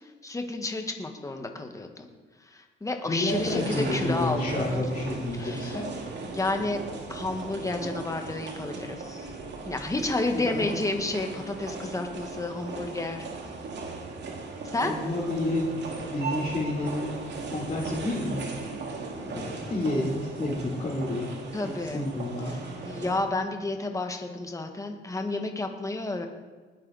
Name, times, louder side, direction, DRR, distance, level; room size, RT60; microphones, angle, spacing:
voice 1, 0.2-2.1 2.5-4.8 5.4-5.8 6.2-6.8 7.1-9.3 9.6-13.2 14.7-14.9 21.5-22.0 22.8-26.3, left 2 dB, 15° left, 4 dB, 1.6 m, -31 dB
voice 2, 3.1-5.9 10.3-10.7 14.8-15.7 16.1-17.1 17.5-18.5 19.2-21.4 21.9-22.6, left 1 dB, 30° left, -8 dB, 3.7 m, -30 dB
sound 1, 3.3-23.2, right 3 dB, 60° right, 2.4 m, -37 dB
20.0 x 8.4 x 4.2 m, 1.4 s
cardioid pair, 90°, 20 cm